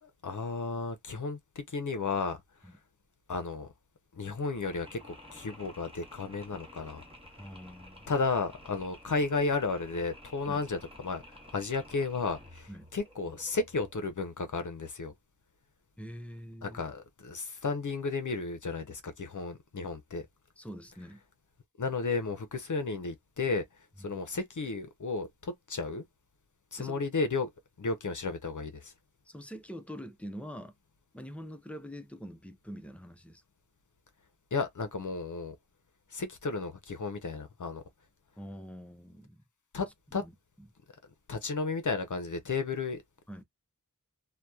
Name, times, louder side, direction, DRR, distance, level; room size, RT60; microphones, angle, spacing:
voice 1, 0.0-2.4 3.3-3.7 4.1-5.0 5.3-7.0 8.1-15.1 16.6-20.3 21.8-23.6 24.0-26.0 26.7-27.5 27.8-28.9 34.5-35.5 36.1-37.8 39.7-40.2 41.3-43.0, left 4 dB, 60° left, 0.6 m, -33 dB
Mechanisms, 4.4-14.1, left 1 dB, 15° right, 1.1 m, -52 dB
voice 2, 7.4-8.1 10.5-10.6 12.7-12.9 16.0-16.8 20.6-21.2 24.0-24.2 26.8-27.0 29.3-30.7 31.1-33.4 38.4-39.4 40.2-40.3 43.3-43.4, equal, 5° left, 0.4 m, -44 dB
2.8 x 2.1 x 2.2 m
wide cardioid pair, 45°, 34 cm